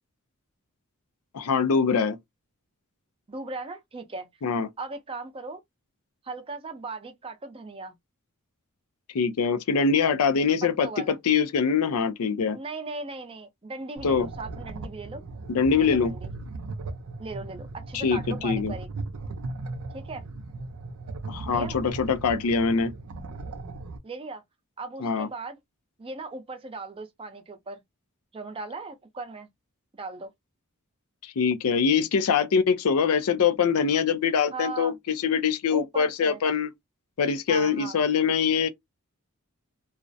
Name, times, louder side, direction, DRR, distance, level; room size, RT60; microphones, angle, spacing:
voice 1, 1.3-2.2 4.4-4.7 9.1-12.6 14.0-14.3 15.5-16.1 17.9-18.7 21.3-22.9 25.0-25.3 31.2-36.7 37.2-38.7, left 6 dB, 75° left, 0.4 m, -23 dB
voice 2, 3.3-4.3 4.8-5.6 6.2-7.9 10.8-11.2 12.5-15.2 15.7-16.3 17.2-18.9 19.9-20.2 21.5-21.8 24.0-24.4 24.8-25.6 26.0-27.8 28.3-29.5 29.9-30.3 34.5-35.0 35.7-36.4 37.5-38.0, right 3 dB, 25° right, 0.5 m, -38 dB
sound 1, 14.0-24.0, right 3 dB, 80° right, 0.5 m, -37 dB
2.4 x 2.0 x 2.5 m
head